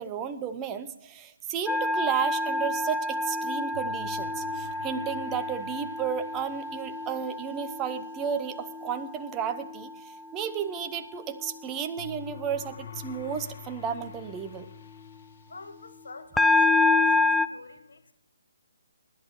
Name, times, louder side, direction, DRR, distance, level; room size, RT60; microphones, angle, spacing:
voice 1, 0.0-9.9 10.3-14.7, right 8 dB, 20° right, 8 dB, 0.8 m, -33 dB
sound 1, 1.7-10.0 10.4-10.8 16.4-17.5, left 3 dB, 5° left, 0.4 m, -28 dB
sound 2, 3.7-7.4 12.0-16.1, left 8 dB, 50° left, 0.7 m, -46 dB
voice 2, 15.5-18.1, left 4 dB, 75° left, 8 dB, 1.5 m, -45 dB
19.5 x 11.0 x 3.1 m, 0.83 s
figure-of-eight pair, 145°, 0 cm